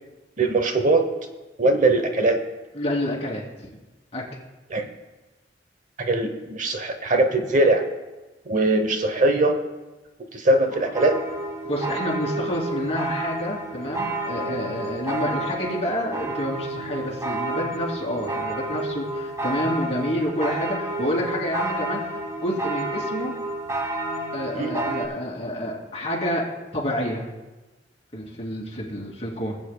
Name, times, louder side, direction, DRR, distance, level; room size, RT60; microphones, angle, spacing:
voice 1, 0.4-1.1 1.6-2.4 4.7-4.9 6.0-7.9 8.5-9.6 10.3-11.2 24.5-24.7, right 2 dB, 45° right, 6 dB, 0.8 m, -21 dB
voice 2, 2.7-3.4 4.1-4.2 11.6-22.0 22.4-23.3 24.3-26.4 26.7-27.2 28.1-29.6, equal, 35° left, -4 dB, 2.6 m, -28 dB
sound 1, 10.9-25.1, right 2 dB, 20° right, 1.1 m, -30 dB
19.5 x 8.8 x 2.2 m, 1.2 s
head